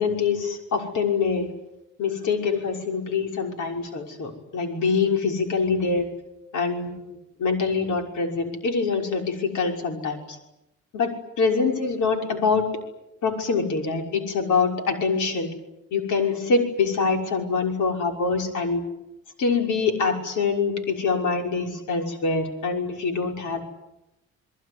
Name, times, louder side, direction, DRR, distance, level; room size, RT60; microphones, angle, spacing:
voice 1, 0.0-1.5 2.0-6.1 6.5-10.4 10.9-12.7 13.2-15.5 15.9-18.8 19.4-23.6, left 4 dB, 75° left, 4 dB, 6.1 m, -25 dB
26.5 x 22.5 x 9.8 m, 0.90 s
cardioid pair, 90°, 30 cm